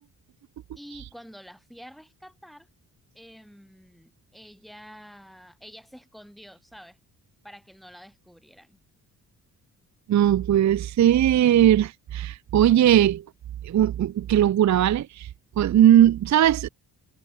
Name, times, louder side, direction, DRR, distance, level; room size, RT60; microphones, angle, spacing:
voice 1, 0.8-2.7 3.1-7.0 7.4-8.8, equal, ahead, 5.3 m, -48 dB
voice 2, 10.1-13.2 13.6-15.3 15.6-16.7, right 11 dB, 45° right, 0.5 m, -19 dB
supercardioid pair, 55°, 41 cm